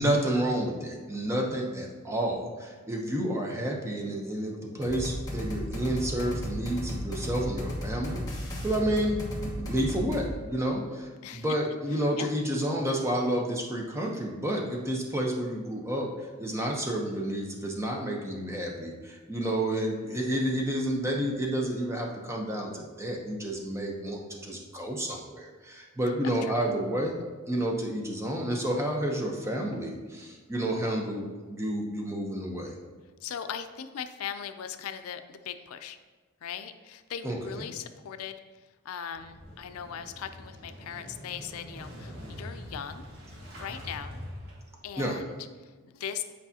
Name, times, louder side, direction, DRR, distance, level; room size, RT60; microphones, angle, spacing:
voice 1, 0.0-8.2 8.6-27.2 27.5-32.8 37.2-37.6 45.0-45.2, right 1 dB, 15° right, 0 dB, 0.8 m, -30 dB
sound 1, 4.8-10.3, left 1 dB, 20° left, 1.3 m, -35 dB
voice 2, 11.2-11.6 12.2-12.4 16.5-16.6 33.2-36.0 36.4-38.4 38.8-43.0 43.6-44.2 44.8-46.2, left 8 dB, 85° left, 9 dB, 0.4 m, -39 dB
Motorcycle / Engine starting, 39.1-45.0, equal, 50° right, 1.8 m, -44 dB
8.3 x 4.7 x 2.8 m, 1.4 s
head